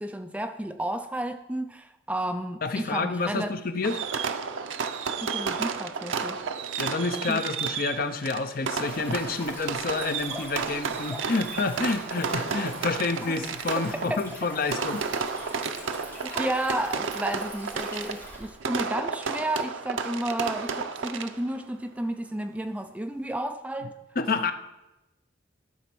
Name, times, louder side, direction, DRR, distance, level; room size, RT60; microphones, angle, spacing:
voice 1, 0.0-3.5 5.2-6.4 7.3-7.4 13.3-13.4 14.1-14.2 16.2-23.9, right 1 dB, 5° right, 7 dB, 0.3 m, -32 dB
voice 2, 2.6-4.0 6.8-15.0 24.2-24.5, left 3 dB, 45° left, 9 dB, 0.6 m, -29 dB
Fireworks, 3.8-21.6, right 5 dB, 80° right, 0.6 m, -32 dB
Stream, 8.8-18.6, equal, 10° left, 2.4 m, -42 dB
12.0 x 4.1 x 6.1 m, 0.98 s
head